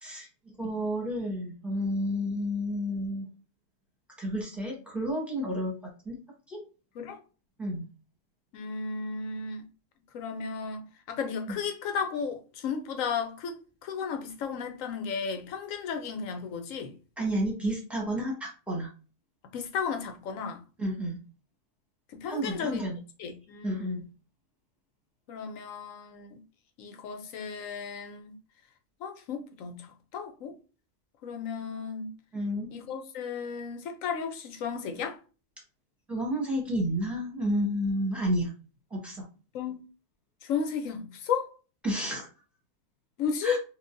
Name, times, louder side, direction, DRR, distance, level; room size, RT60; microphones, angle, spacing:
voice 1, 0.0-3.2 4.2-5.7 6.0-6.2 6.5-6.6 7.6-7.8 17.2-18.9 20.8-21.2 22.3-23.0 23.6-24.0 32.3-32.7 36.1-38.5 38.9-39.2 41.8-42.3 43.4-43.6, equal, ahead, 1.1 m, -31 dB
voice 2, 8.5-9.6 10.1-16.9 19.5-20.6 22.1-22.9 23.2-24.0 25.3-26.4 26.8-28.3 29.0-29.8 30.1-30.5 31.2-32.1 32.7-35.2 39.5-39.8 40.4-41.5 43.2-43.6, left 6 dB, 80° left, 1.0 m, -34 dB
4.3 x 2.2 x 2.5 m
omnidirectional pair, 1.4 m